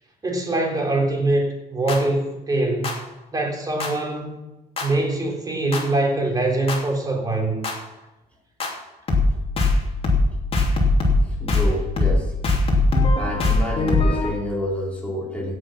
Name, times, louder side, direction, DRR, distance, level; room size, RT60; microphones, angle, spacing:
voice 1, 0.2-3.0 3.3-4.3 4.8-7.6, right 2 dB, 20° right, 1 dB, 3.4 m, -23 dB
sound 1, 1.9-2.0 2.8-2.9 3.8-3.9 4.8-4.9 5.7-5.8 6.7-6.8 7.6-7.7 8.6-8.7 9.1-9.3 9.6-9.8 10.0-10.3 10.5-11.2 11.5-11.7 12.0-12.2 12.4-14.3, left 3 dB, 35° left, 2.9 m, -19 dB
voice 2, 11.2-12.3 13.2-15.6, left 1 dB, 5° left, -3 dB, 3.1 m, -29 dB
16.0 x 6.5 x 5.9 m, 1.0 s
cardioid pair, 110°, 17 cm